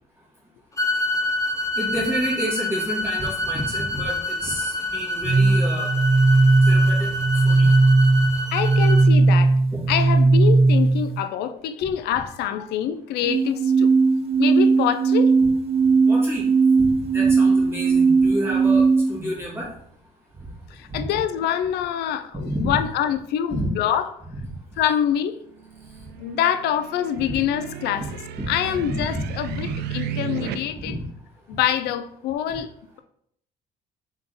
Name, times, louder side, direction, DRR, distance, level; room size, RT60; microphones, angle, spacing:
sound 1, 0.8-9.1, left 2 dB, 20° left, 0.9 m, -27 dB
voice 1, 1.7-5.9 6.6-7.7 8.2-8.3 9.7-9.8 16.1-16.5 16.8-19.7 20.9-21.1 22.4-22.8 23.5-23.7 25.9-26.0 27.2-27.4 28.0-28.1 28.4-28.5 28.8-29.6 30.7-31.1, right 1 dB, 15° right, 1.7 m, -30 dB
sound 2, 5.2-11.2 13.2-19.2, right 3 dB, 35° right, 0.7 m, -17 dB
voice 2, 8.5-9.6 9.9-13.9 14.4-15.4 20.7-24.1 24.8-25.4 26.2-28.1 28.5-31.0 31.5-32.7, left 9 dB, 80° left, 0.4 m, -25 dB
sound 3, 25.6-30.6, right 8 dB, 75° right, 0.5 m, -34 dB
3.7 x 3.6 x 3.9 m
cardioid pair, 110°, 17 cm